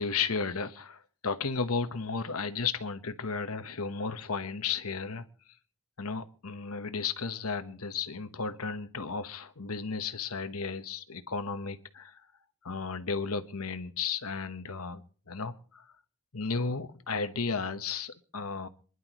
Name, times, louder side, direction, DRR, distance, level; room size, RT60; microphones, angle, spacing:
voice 1, 0.0-5.2 6.0-12.2 12.6-15.9 16.3-18.7, left 5 dB, 75° left, 1.1 m, -34 dB
26.5 x 11.0 x 3.0 m
head